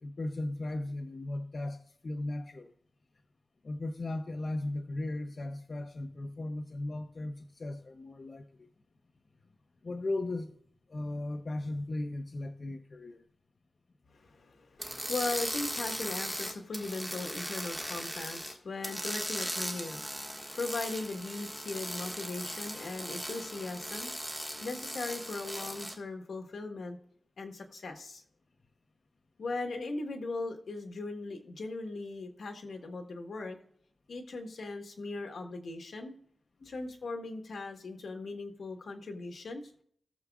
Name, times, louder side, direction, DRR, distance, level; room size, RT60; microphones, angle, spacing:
voice 1, 0.0-2.7 3.6-8.7 9.8-10.5 10.9-13.3 36.6-36.7, left 2 dB, 50° left, 0.6 m, -37 dB
voice 2, 14.1-24.1 24.6-27.0 27.4-28.2 29.4-33.6 34.1-36.2 36.6-39.7, left 3 dB, 85° left, 1.4 m, -39 dB
sound 1, 14.8-18.5 18.8-25.9, equal, ahead, 1.6 m, -38 dB
18.0 x 7.0 x 2.4 m
wide cardioid pair, 100°, 0 cm